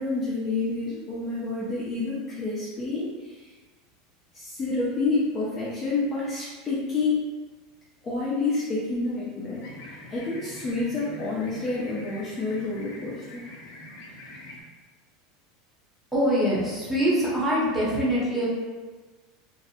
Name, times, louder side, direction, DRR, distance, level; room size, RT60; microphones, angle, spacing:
voice 1, 0.0-3.5 4.3-7.2 8.0-9.7 10.1-13.4, left 3 dB, 25° left, -8 dB, 0.5 m, -28 dB
sound 1, 9.5-14.6, left 1 dB, 70° left, 0.6 m, -44 dB
voice 2, 16.1-18.5, equal, ahead, -8 dB, 0.8 m, -24 dB
2.6 x 2.0 x 2.8 m, 1.3 s
supercardioid pair, 135°, 0 cm